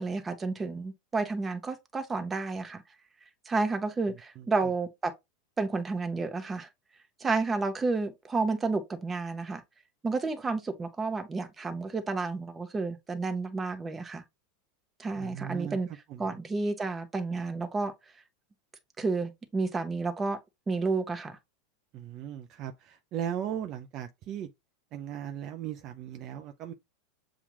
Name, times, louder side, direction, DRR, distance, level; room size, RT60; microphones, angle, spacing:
voice 1, 0.0-2.8 3.5-5.1 5.6-6.7 7.2-9.6 10.0-14.2 15.0-15.9 16.2-17.9 19.0-20.4 20.7-21.4, right 3 dB, 20° right, 0.9 m, -31 dB
voice 2, 4.1-4.7 15.2-16.4 21.9-24.5 24.9-26.7, right 10 dB, 45° right, 0.5 m, -38 dB
7.0 x 2.4 x 3.0 m
hypercardioid pair, 100°, 0 cm